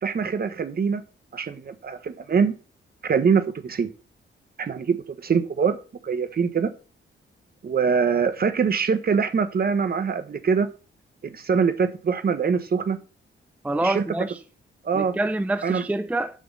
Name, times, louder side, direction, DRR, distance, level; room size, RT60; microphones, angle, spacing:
voice 1, 0.0-1.0 1.3-2.5 3.0-3.9 4.6-5.8 6.0-6.7 7.6-10.7 11.2-13.0 13.8-14.0 14.8-15.1 15.6-15.8, right 6 dB, 45° right, 1.2 m, -23 dB
voice 2, 13.6-14.4 14.9-16.4, right 2 dB, 5° right, 0.5 m, -26 dB
7.5 x 6.2 x 7.4 m
cardioid pair, 110°, 21 cm